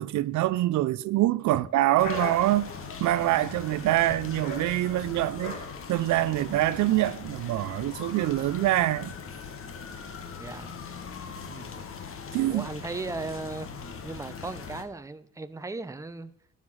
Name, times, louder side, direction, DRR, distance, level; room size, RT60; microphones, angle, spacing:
voice 1, 0.0-2.7 3.0-5.6 5.9-9.1 12.3-12.7, right 15 dB, 75° right, 0.4 m, -25 dB
sound 1, 1.8-6.9, left 1 dB, 85° left, 3.0 m, -40 dB
sound 2, 2.0-14.8, left 5 dB, 45° left, 1.2 m, -41 dB
voice 2, 10.4-10.7 11.5-11.8 12.5-13.7 14.0-16.3, right 3 dB, 10° right, 0.6 m, -37 dB
12.0 x 5.8 x 6.2 m
cardioid pair, 90°, 30 cm